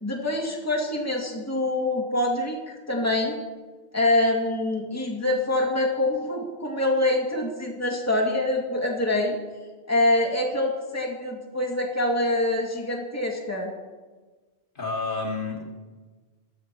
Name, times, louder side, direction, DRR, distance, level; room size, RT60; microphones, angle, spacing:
voice 1, 0.0-3.4 3.9-9.4 9.9-13.7, left 1 dB, 15° left, -1 dB, 2.2 m, -25 dB
voice 2, 14.7-15.6, left 3 dB, 55° left, -1 dB, 2.5 m, -29 dB
23.0 x 14.0 x 3.0 m, 1.3 s
omnidirectional pair, 1.1 m